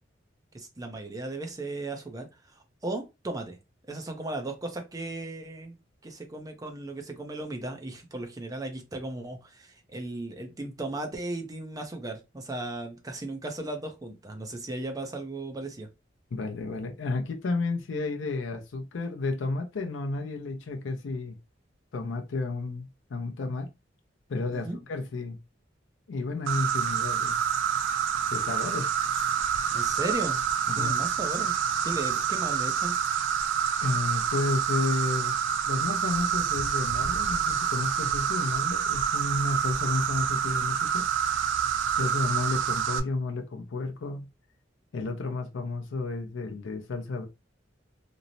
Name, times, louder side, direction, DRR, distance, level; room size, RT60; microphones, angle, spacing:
voice 1, 0.5-3.6 3.9-5.8 6.0-15.9 24.5-24.8 29.7-30.4 30.7-31.5 31.8-33.0, right 2 dB, 20° right, 0.5 m, -36 dB
voice 2, 16.3-21.4 21.9-23.7 24.3-25.4 26.1-27.4 28.3-28.9 30.7-31.0 33.8-41.1 42.0-44.3 44.9-47.3, left 3 dB, 80° left, 0.5 m, -32 dB
Insect, 26.5-43.0, right 7 dB, 75° right, 0.3 m, -27 dB
3.0 x 2.0 x 2.5 m
head